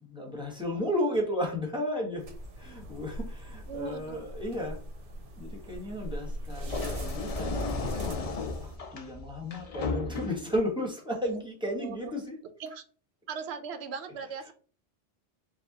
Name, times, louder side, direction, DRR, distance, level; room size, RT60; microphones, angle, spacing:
voice 1, 0.0-2.2 2.6-4.8 5.4-12.4, left 1 dB, 5° right, 1.1 m, -34 dB
sound 1, 2.2-8.8, equal, 90° right, 1.3 m, -40 dB
voice 2, 3.7-4.2 6.2-6.3 11.8-12.0 12.6-12.8 13.3-14.5, right 6 dB, 65° right, 0.9 m, -38 dB
sound 2, 6.6-10.6, left 3 dB, 45° left, 0.5 m, -34 dB
5.0 x 2.3 x 3.9 m
omnidirectional pair, 1.2 m